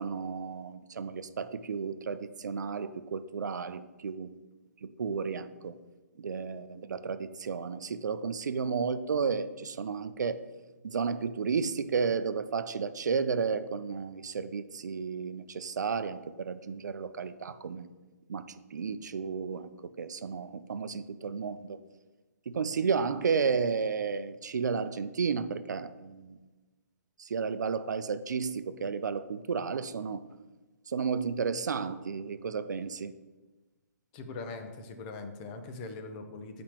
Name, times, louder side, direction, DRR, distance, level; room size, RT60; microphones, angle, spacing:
voice 1, 0.0-4.3 4.8-5.8 6.2-10.4 10.8-17.9 18.3-18.5 18.7-19.7 20.0-21.8 22.5-26.4 27.2-30.2 30.9-33.1, right 5 dB, 90° right, 12 dB, 0.4 m, -32 dB
voice 2, 34.1-36.6, left 3 dB, 30° left, 6 dB, 0.6 m, -41 dB
7.4 x 5.0 x 2.9 m, 1.2 s
hypercardioid pair, 150°, 9 cm